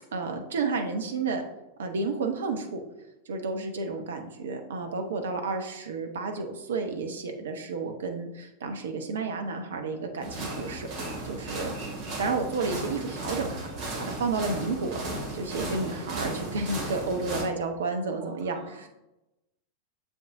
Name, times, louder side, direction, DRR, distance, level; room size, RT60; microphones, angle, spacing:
voice 1, 0.1-1.4 1.8-2.8 3.3-11.8 12.2-18.9, right 4 dB, 65° right, 5 dB, 0.8 m, -31 dB
sound 1, 10.2-17.4, right 1 dB, 40° right, 2.2 m, -35 dB
voice 2, 11.7-12.5 18.2-18.8, right 4 dB, 25° right, -2 dB, 2.3 m, -47 dB
7.0 x 6.0 x 2.6 m, 0.95 s
figure-of-eight pair, 90°, 0 cm